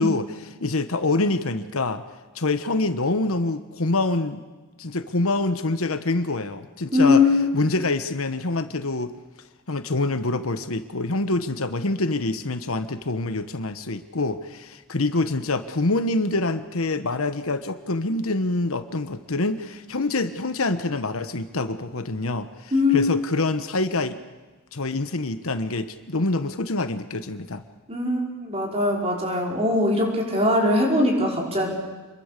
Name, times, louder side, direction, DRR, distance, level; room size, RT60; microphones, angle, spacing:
voice 1, 0.0-2.0 2.3-4.4 4.8-7.2 7.5-9.1 9.7-24.2 24.7-27.6, left 2 dB, 70° left, 10 dB, 1.2 m, -26 dB
voice 2, 6.9-7.4 22.7-23.1 27.9-31.7, left 2 dB, 30° right, 0 dB, 5.2 m, -21 dB
27.5 x 22.5 x 6.8 m, 1.2 s
head